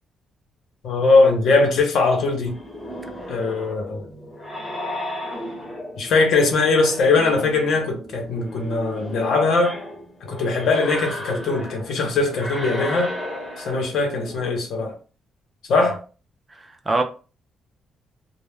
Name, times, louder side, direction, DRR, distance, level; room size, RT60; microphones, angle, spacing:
voice 1, 0.8-2.6 3.3-4.0 6.0-9.8 10.3-13.1 13.6-15.0 15.7-16.0, left 3 dB, 70° left, 0.7 m, -20 dB
sound 1, 2.4-14.4, left 1 dB, 10° left, 0.7 m, -34 dB
voice 2, 16.5-17.0, right 2 dB, 20° right, 0.4 m, -24 dB
2.1 x 2.1 x 3.3 m
cardioid pair, 135°, 0 cm